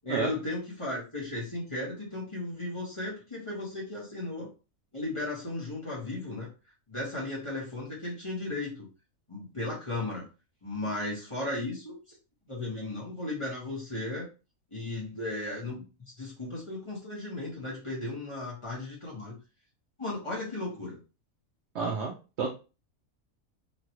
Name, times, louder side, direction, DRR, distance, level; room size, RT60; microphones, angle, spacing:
voice 1, 0.0-4.5 4.9-6.5 6.9-8.9 9.3-10.3 10.6-12.1 12.5-14.3 14.7-19.3 20.0-21.0, left 2 dB, 25° left, -5 dB, 1.0 m, -35 dB
voice 2, 21.7-22.5, right 5 dB, 65° right, 0 dB, 0.8 m, -30 dB
3.1 x 2.4 x 2.8 m, 0.31 s
omnidirectional pair, 1.4 m